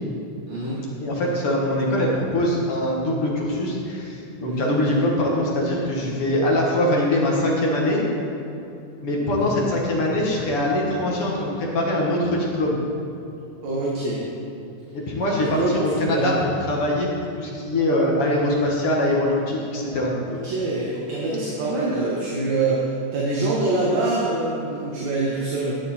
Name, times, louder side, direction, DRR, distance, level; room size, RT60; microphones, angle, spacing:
voice 1, 0.5-0.8 4.4-4.7 9.4-9.6 13.6-14.2 15.4-15.7 16.0-16.3 20.3-25.8, right 2 dB, 65° right, -6 dB, 2.6 m, -25 dB
voice 2, 1.0-8.0 9.0-12.8 14.9-20.1, left 1 dB, 55° left, -3 dB, 2.1 m, -23 dB
12.0 x 9.4 x 4.3 m, 2.8 s
omnidirectional pair, 3.5 m